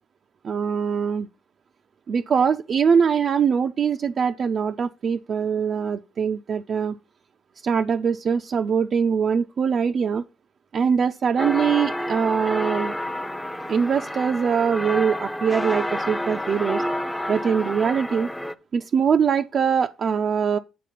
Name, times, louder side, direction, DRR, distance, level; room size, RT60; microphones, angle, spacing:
voice 1, 0.4-1.3 2.1-6.9 7.6-10.2 10.7-12.9 13.7-16.8 17.3-18.3 18.7-20.6, right 6 dB, 50° right, 0.4 m, -22 dB
sound 1, 11.4-18.5, left 1 dB, 5° left, 0.6 m, -29 dB
8.5 x 4.1 x 5.6 m
cardioid pair, 90°, 0 cm